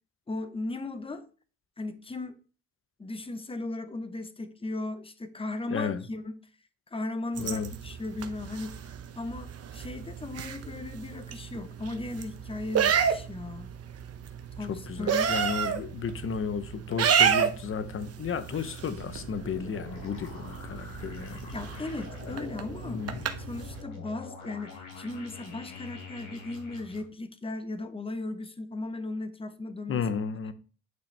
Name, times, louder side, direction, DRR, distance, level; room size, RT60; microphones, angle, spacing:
voice 1, 0.3-1.2 1.8-2.4 3.0-6.4 6.9-8.8 9.2-13.7 14.6-15.3 21.3-23.2 23.5-30.0, left 2 dB, 20° left, 0.9 m, -37 dB
voice 2, 5.7-6.1 7.4-7.7 14.7-21.6 22.2-22.5 22.8-23.3 29.9-30.5, left 6 dB, 45° left, 0.8 m, -33 dB
sound 1, 7.3-23.8, right 7 dB, 55° right, 0.9 m, -31 dB
sound 2, 18.9-27.0, left 3 dB, 80° left, 3.1 m, -45 dB
9.2 x 5.8 x 3.4 m
cardioid pair, 90°, 30 cm